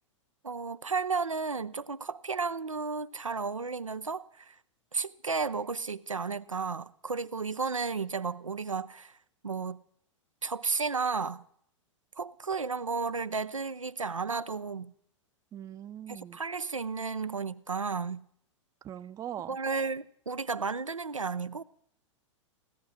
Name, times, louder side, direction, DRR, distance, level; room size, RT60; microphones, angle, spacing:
voice 1, 0.4-4.5 4.9-9.2 9.4-9.8 10.4-11.4 12.2-14.9 16.1-18.2 19.5-21.6, right 4 dB, 85° right, 0.6 m, -33 dB
voice 2, 15.5-16.4 18.8-19.6, right 10 dB, 20° right, 0.6 m, -41 dB
17.0 x 13.0 x 6.3 m
figure-of-eight pair, 100°, 16 cm